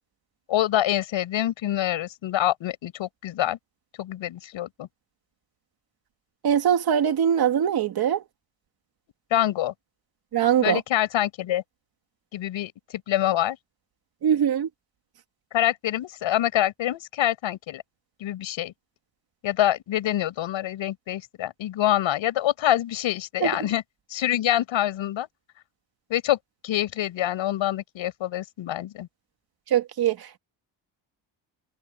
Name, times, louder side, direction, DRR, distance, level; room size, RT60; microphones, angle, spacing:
voice 1, 0.5-3.6 4.0-4.9 9.3-9.7 10.6-11.6 12.3-13.6 15.5-17.8 18.2-18.7 19.4-23.8 24.1-25.3 26.1-26.4 26.6-29.1, left 13 dB, 85° left, 7.8 m, -26 dB
voice 2, 6.4-8.2 10.3-10.8 14.2-14.7 23.4-23.5 29.7-30.4, right 9 dB, 55° right, 2.6 m, -22 dB
cardioid pair, 175°, 45 cm